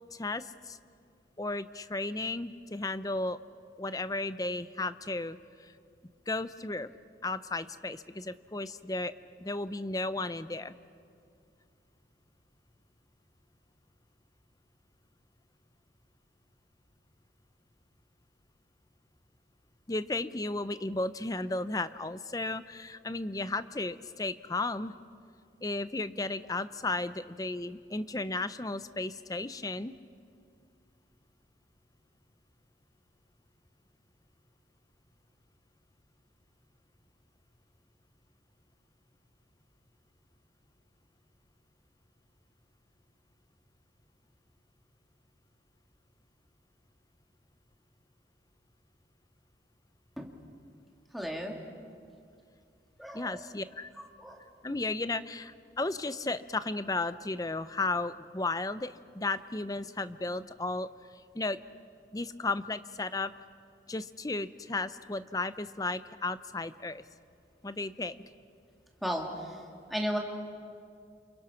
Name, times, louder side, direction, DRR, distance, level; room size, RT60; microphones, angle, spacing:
voice 1, 0.1-0.8 1.4-3.4 3.8-5.7 6.3-6.9 7.2-9.1 9.4-10.8 19.9-24.9 25.6-29.9 53.1-53.9 54.6-60.9 61.3-61.6 62.1-63.3 63.9-67.0 67.6-68.1, left 2 dB, 20° left, 13 dB, 0.6 m, -34 dB
voice 2, 51.1-51.5 53.0-53.4 54.0-54.4 69.0-70.2, equal, ahead, 0 dB, 2.5 m, -35 dB
29.5 x 28.5 x 5.9 m, 2.3 s
head